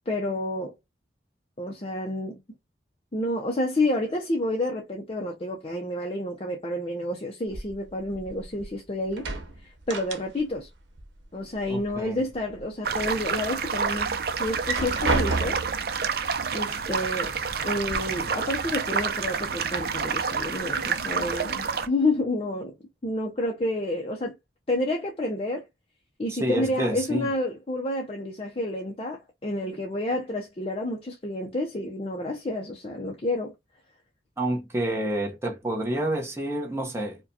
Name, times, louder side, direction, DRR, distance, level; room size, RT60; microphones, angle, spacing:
voice 1, 0.1-0.7 1.6-2.4 3.1-9.3 9.6-10.7 11.3-15.6 16.5-17.3 17.6-22.7 23.0-24.3 24.7-25.7 26.2-33.5, left 1 dB, 30° left, 0.5 m, -29 dB
sound 1, 7.5-8.7 9.0-10.7 10.9-11.9 12.3-13.1 13.6-13.7 14.5-15.9 16.8-16.9 17.3-18.0, right 3 dB, 75° right, 0.9 m, -31 dB
voice 2, 11.7-12.2 26.3-27.3 34.4-37.2, right 1 dB, 15° right, 0.8 m, -28 dB
sound 2, 12.8-21.9, right 5 dB, 50° right, 0.5 m, -29 dB
4.8 x 2.2 x 2.7 m
head